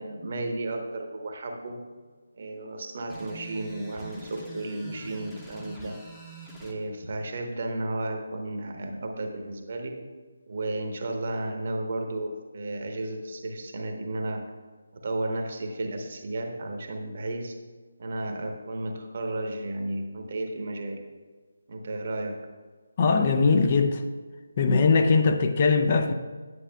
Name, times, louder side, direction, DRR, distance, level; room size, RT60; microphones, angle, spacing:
voice 1, 0.0-1.9 2.3-6.0 6.6-10.0 10.5-14.4 14.9-17.6 18.0-21.0 21.7-22.5, right 2 dB, 45° right, 3 dB, 1.0 m, -33 dB
sound 1, 3.1-6.8, right 2 dB, 5° left, 0.9 m, -44 dB
voice 2, 23.0-24.0 24.6-26.1, left 4 dB, 35° left, 6 dB, 0.5 m, -21 dB
9.6 x 8.8 x 2.3 m, 1.4 s
figure-of-eight pair, 150°, 0 cm